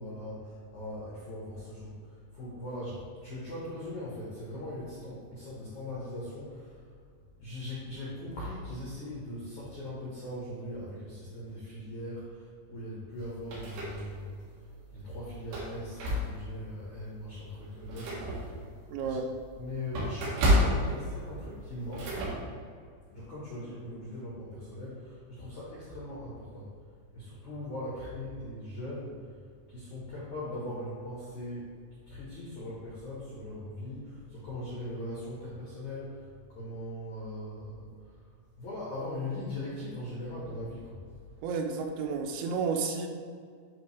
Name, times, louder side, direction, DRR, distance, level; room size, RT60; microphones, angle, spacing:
voice 1, 0.0-6.9 7.4-14.3 14.9-22.4 22.7-22.8 23.1-26.7 27.1-29.3 29.7-38.3 38.6-41.1, left 1 dB, 80° left, -8 dB, 1.7 m, -40 dB
sound 1, 13.1-14.4 14.9-15.0 15.4-16.6 17.1-17.2 17.6-22.3, equal, 65° right, 3.2 m, -31 dB
voice 2, 18.9-19.3 41.4-43.1, right 5 dB, 85° right, 4 dB, 3.3 m, -31 dB
10.5 x 3.7 x 3.4 m, 2.1 s
omnidirectional pair, 5.9 m